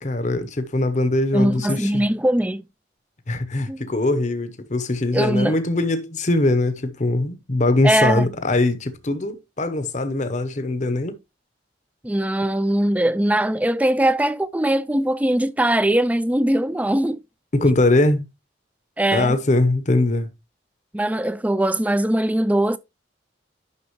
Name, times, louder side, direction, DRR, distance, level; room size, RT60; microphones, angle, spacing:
voice 1, 0.0-2.0 3.3-11.2 17.5-18.3 19.1-20.3, left 2 dB, 40° left, 0.8 m, -21 dB
voice 2, 1.3-2.6 3.7-3.9 5.1-5.5 7.8-8.3 12.0-17.2 19.0-19.4 20.9-22.8, right 1 dB, 10° right, 0.4 m, -21 dB
9.7 x 6.1 x 3.0 m
head